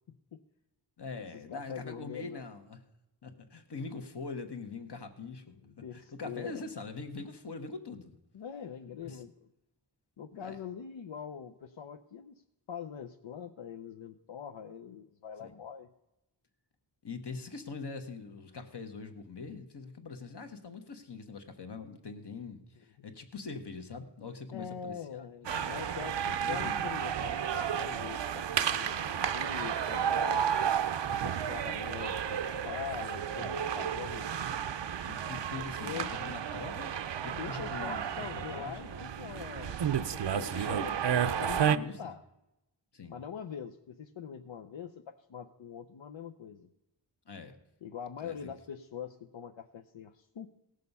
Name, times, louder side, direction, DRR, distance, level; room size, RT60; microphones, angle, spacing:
voice 1, 0.1-0.4 1.5-2.5 5.6-6.6 8.3-9.3 10.2-12.4 12.7-15.9 24.5-30.5 31.1-34.5 35.5-36.1 37.4-40.9 41.3-42.2 43.1-46.7 47.8-50.5, left 8 dB, 85° left, 6 dB, 0.6 m, -43 dB
voice 2, 1.0-2.8 3.2-5.6 5.9-8.2 9.0-9.2 10.3-10.6 15.4-15.5 17.0-25.5 26.3-26.9 33.3-34.0 35.1-37.0 37.2-39.1 40.4-41.0 41.3-42.0 42.9-43.2 47.3-47.6 48.2-48.5, left 4 dB, 60° left, 6 dB, 1.3 m, -43 dB
sound 1, 25.4-41.8, right 8 dB, 70° right, 0.6 m, -32 dB
17.5 x 6.5 x 5.4 m, 0.92 s
wide cardioid pair, 70°, 45 cm